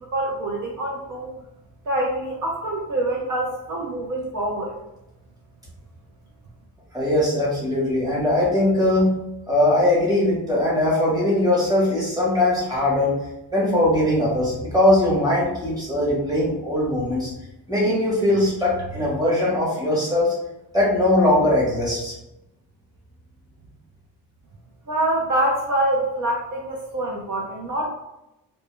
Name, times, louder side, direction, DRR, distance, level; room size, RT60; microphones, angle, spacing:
voice 1, 0.1-1.3 1.9-4.8 24.9-27.9, right 1 dB, 50° right, -2 dB, 0.4 m, -25 dB
voice 2, 6.9-9.1 9.5-13.1 13.5-17.3 17.7-20.3 20.7-22.1, left 1 dB, 10° right, -6 dB, 0.9 m, -20 dB
2.1 x 2.0 x 3.0 m, 0.90 s
wide cardioid pair, 150°, 41 cm